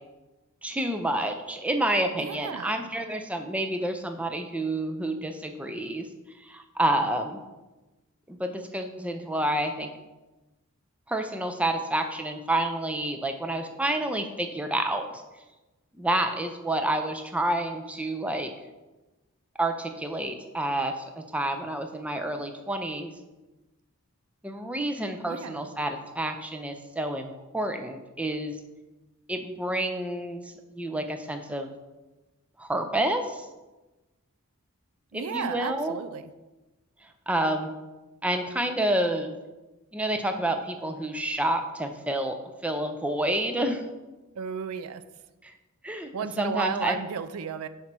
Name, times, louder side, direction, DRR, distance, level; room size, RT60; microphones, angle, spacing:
voice 1, 0.6-6.1 6.4-7.4 8.3-9.9 11.1-15.2 16.0-18.5 19.6-23.1 24.4-28.6 29.3-31.7 32.6-33.5 35.1-36.0 37.3-37.7 38.2-39.4 39.9-42.3 42.6-43.8 45.4-45.5 45.8-46.1 46.4-47.0, right 1 dB, 5° right, 6 dB, 0.4 m, -29 dB
voice 2, 2.1-2.7 25.3-25.7 35.1-36.3 44.4-45.0 46.1-47.7, right 6 dB, 75° right, 12 dB, 0.4 m, -33 dB
5.2 x 4.2 x 6.0 m, 1.1 s
head